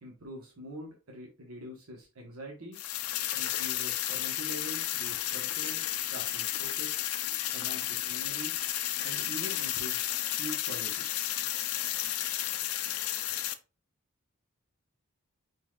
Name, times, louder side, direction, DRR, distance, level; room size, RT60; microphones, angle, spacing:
voice 1, 0.0-2.8 3.3-7.0 7.5-8.5 9.0-11.0, equal, 85° right, 0 dB, 1.2 m, -44 dB
sound 1, 2.7-13.5, left 13 dB, 90° left, 0.5 m, -32 dB
4.6 x 4.1 x 2.4 m, 0.31 s
head